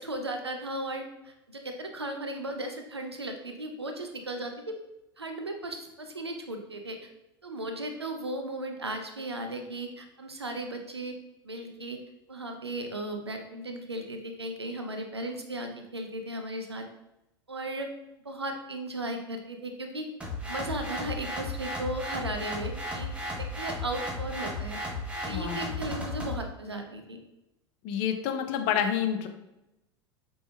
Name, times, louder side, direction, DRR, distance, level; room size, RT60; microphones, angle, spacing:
voice 1, 0.0-4.7 5.2-7.0 7.4-11.2 11.4-12.0 12.3-16.8 17.5-17.9 18.2-23.1 23.4-24.8 25.2-27.2, right 1 dB, 85° right, 5 dB, 0.5 m, -36 dB
sound 1, 20.2-26.4, left 1 dB, 10° right, 0.9 m, -35 dB
voice 2, 25.3-25.6 27.8-29.3, left 9 dB, 45° left, 6 dB, 0.5 m, -28 dB
5.0 x 3.4 x 2.3 m, 0.92 s
figure-of-eight pair, 75°, 13 cm